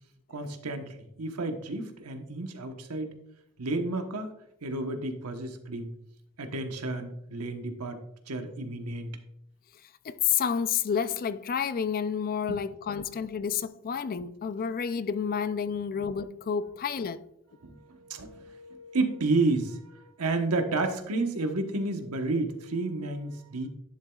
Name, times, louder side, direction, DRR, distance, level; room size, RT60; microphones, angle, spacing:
voice 1, 0.3-3.1 3.6-4.3 4.6-5.9 6.4-8.0 8.3-9.1 12.5-12.6 15.9-16.0 17.6-23.7, right 2 dB, 85° right, 1.1 m, -31 dB
voice 2, 10.0-17.2, left 7 dB, 40° left, 0.4 m, -30 dB
11.0 x 7.0 x 2.3 m
head